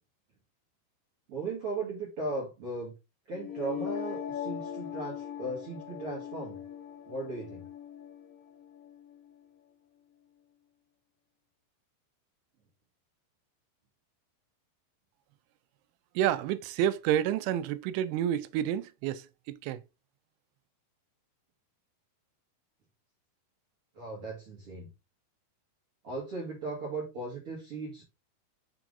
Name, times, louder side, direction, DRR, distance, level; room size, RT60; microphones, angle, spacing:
voice 1, 1.3-2.9 3.3-6.6 7.1-7.6 23.9-24.9 26.0-28.0, right 3 dB, 55° right, 1.6 m, -37 dB
sound 1, 3.3-9.3, left 9 dB, 65° left, 3.6 m, -40 dB
voice 2, 16.2-19.8, right 11 dB, 85° right, 3.0 m, -29 dB
6.7 x 6.0 x 2.6 m
omnidirectional pair, 5.4 m